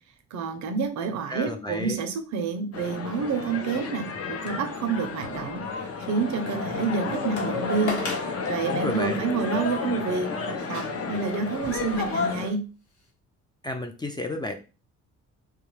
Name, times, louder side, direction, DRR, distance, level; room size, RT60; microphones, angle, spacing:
voice 1, 0.3-5.6 6.1-8.1 8.5-10.8 11.1-12.7, right 5 dB, 70° right, 7 dB, 0.6 m, -28 dB
voice 2, 1.3-2.0 8.7-9.2 13.6-14.5, left 2 dB, 15° left, 5 dB, 0.4 m, -31 dB
sound 1, 2.7-12.5, left 4 dB, 50° left, 0.7 m, -31 dB
sound 2, 5.3-5.9 6.4-6.5 7.4-7.5 7.9-8.3 9.1-9.2 10.6-12.5 13.0-13.1, left 3 dB, 85° left, 1.0 m, -38 dB
2.3 x 2.3 x 3.1 m, 0.33 s
cardioid pair, 90°, 30 cm